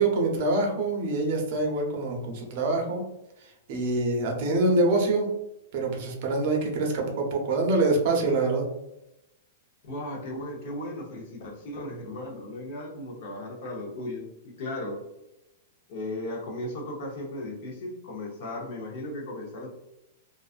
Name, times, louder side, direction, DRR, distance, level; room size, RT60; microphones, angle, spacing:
voice 1, 0.0-3.0 3.7-5.3 5.7-8.6, right 2 dB, 45° right, 1 dB, 0.6 m, -25 dB
voice 2, 9.8-15.0 15.9-19.7, left 1 dB, 50° left, 0 dB, 0.8 m, -36 dB
2.4 x 2.3 x 2.4 m, 0.88 s
supercardioid pair, 160°, 0 cm